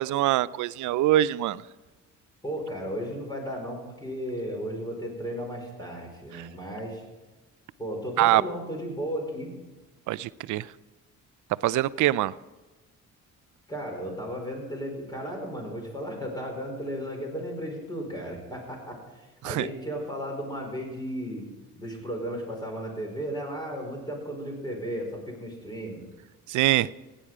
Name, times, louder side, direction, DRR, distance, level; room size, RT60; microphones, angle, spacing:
voice 1, 0.0-1.6 6.3-6.5 8.2-8.4 10.1-10.7 11.6-12.3 19.4-19.7 26.5-26.9, right 14 dB, 75° right, 19 dB, 0.5 m, -24 dB
voice 2, 2.4-7.0 7.8-9.5 13.7-21.4 21.8-26.1, equal, 15° left, 1 dB, 5.0 m, -35 dB
16.5 x 10.5 x 4.9 m, 1.2 s
cardioid pair, 90°, 30 cm